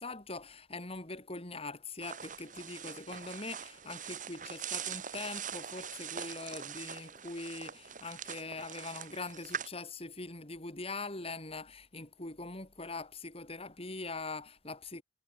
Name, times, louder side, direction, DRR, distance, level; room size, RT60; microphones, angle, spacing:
voice 1, 0.0-15.0, left 3 dB, 35° left, 3.1 m, -42 dB
sound 1, 2.0-9.7, right 8 dB, 45° right, 6.5 m, -43 dB
head